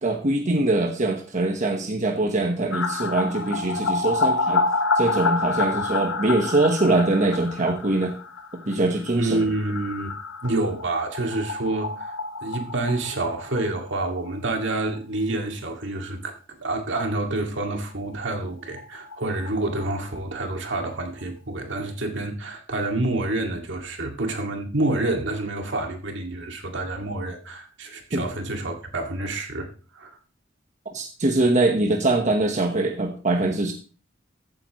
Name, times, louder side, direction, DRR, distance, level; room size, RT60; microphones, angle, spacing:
voice 1, 0.0-4.6 5.0-8.1 8.7-9.4 28.1-28.2 30.9-33.7, right 2 dB, 40° right, 1.1 m, -23 dB
sound 1, 2.7-14.3 14.6-14.7 15.0-15.1 18.1-18.2 18.4-18.5 18.8-20.5 20.8-20.9, left 3 dB, 80° left, 1.1 m, -28 dB
voice 2, 9.1-10.1 10.4-12.2 12.4-30.1, right 2 dB, 65° right, 2.2 m, -28 dB
14.5 x 8.8 x 3.1 m
head